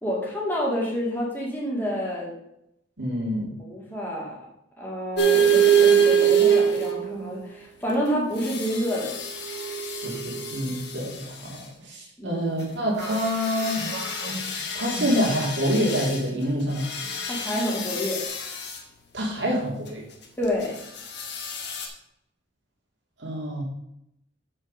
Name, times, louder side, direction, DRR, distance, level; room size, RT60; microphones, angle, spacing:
voice 1, 0.0-2.3 3.7-4.4 4.8-9.1 12.2-12.5 17.3-18.2 20.4-20.8, equal, 10° left, -5 dB, 2.2 m, -28 dB
voice 2, 3.0-3.5 10.0-14.3 14.7-16.9 19.1-20.0 23.2-23.6, equal, 60° right, -2 dB, 2.5 m, -27 dB
sound 1, 5.2-7.3 8.4-10.9 13.0-16.2 16.8-18.7 21.1-21.9, right 6 dB, 55° left, 1.3 m, -24 dB
sound 2, 13.0-15.8 16.1-16.4 17.0-17.5, right 2 dB, 80° right, 2.1 m, -38 dB
7.6 x 5.5 x 5.2 m, 0.79 s
head